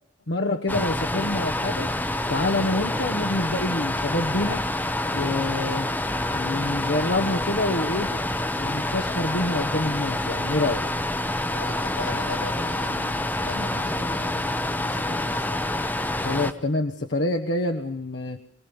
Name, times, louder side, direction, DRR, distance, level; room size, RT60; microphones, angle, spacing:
voice 1, 0.3-1.9 2.3-4.6 5.1-5.9 6.3-8.1 8.6-10.8 16.2-18.4, left 2 dB, 65° left, 4 dB, 1.2 m, -26 dB
sound 1, 0.7-16.5, left 1 dB, 10° left, 0.9 m, -27 dB
voice 2, 11.5-15.6, left 2 dB, 90° left, 4 dB, 6.6 m, -37 dB
24.0 x 19.5 x 7.1 m, 0.71 s
head